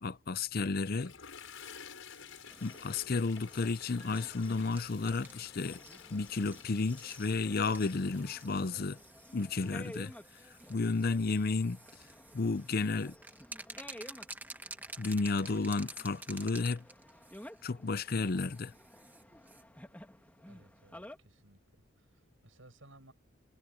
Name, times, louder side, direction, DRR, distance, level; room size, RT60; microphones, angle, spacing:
voice 1, 0.0-1.1 2.6-5.8 6.1-9.0 9.3-10.1 10.7-11.8 12.3-13.1 15.0-16.8 17.6-18.7, left 3 dB, 45° left, 0.6 m, -32 dB
Toilet flush, 0.9-11.4, left 7 dB, 75° left, 5.2 m, -52 dB
sound 1, 2.1-19.6, right 2 dB, 10° right, 1.2 m, -52 dB
sound 2, 2.5-21.2, left 1 dB, 10° left, 2.4 m, -54 dB
voice 2, 20.5-23.1, right 1 dB, 70° right, 7.7 m, -60 dB
head